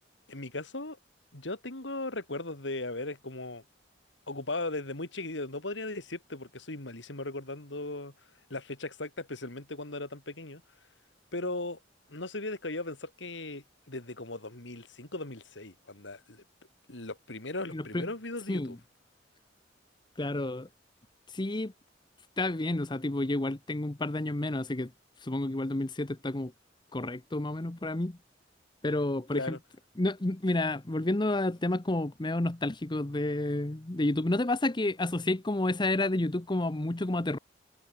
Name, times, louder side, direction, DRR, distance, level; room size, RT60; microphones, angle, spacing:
voice 1, 0.3-1.0 1.3-3.6 4.3-8.1 8.5-10.6 11.3-11.8 12.1-16.4 16.9-18.8 29.3-29.6, left 2 dB, 80° left, 3.3 m, -37 dB
voice 2, 17.7-18.1 18.5-18.8 20.2-20.7 21.3-21.7 22.4-24.9 25.2-26.5 26.9-28.2 28.8-29.6 30.0-37.4, left 2 dB, 25° left, 0.9 m, -30 dB
head